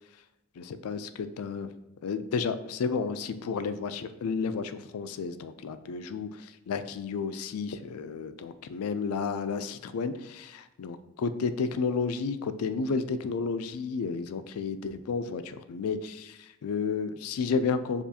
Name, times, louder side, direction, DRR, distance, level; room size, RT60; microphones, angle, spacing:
voice 1, 0.6-1.7 2.0-18.0, left 5 dB, 85° left, 11 dB, 0.4 m, -32 dB
6.8 x 2.4 x 2.7 m, 0.95 s
head